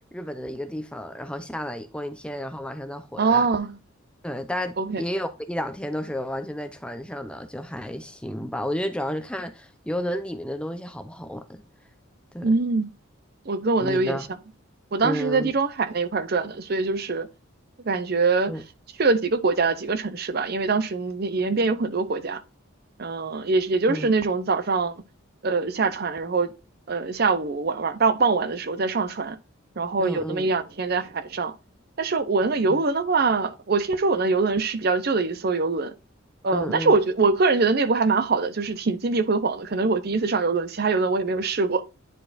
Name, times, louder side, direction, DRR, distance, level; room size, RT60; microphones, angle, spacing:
voice 1, 0.1-3.5 4.2-11.6 12.3-12.6 13.8-14.2 15.0-15.5 18.5-18.6 23.9-24.1 30.0-30.5 32.7-32.8 36.5-36.9, equal, 5° left, 0.6 m, -32 dB
voice 2, 3.2-3.7 4.8-5.0 12.4-12.9 13.5-14.2 14.9-17.3 17.8-18.5 19.0-22.4 23.0-25.0 25.4-26.5 26.9-29.4 29.8-31.5 32.0-35.9 36.4-41.8, right 4 dB, 50° right, 0.6 m, -23 dB
9.9 x 4.5 x 2.5 m
head